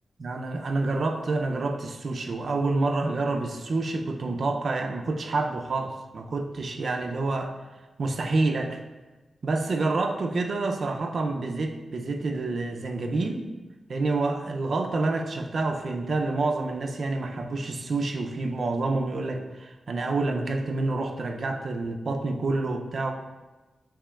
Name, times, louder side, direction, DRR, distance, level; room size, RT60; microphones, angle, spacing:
voice 1, 0.2-7.5 8.0-8.8 9.4-13.4 13.9-23.1, right 3 dB, 55° right, 4 dB, 0.4 m, -28 dB
6.8 x 2.9 x 2.3 m, 1.1 s
wide cardioid pair, 120°, 0 cm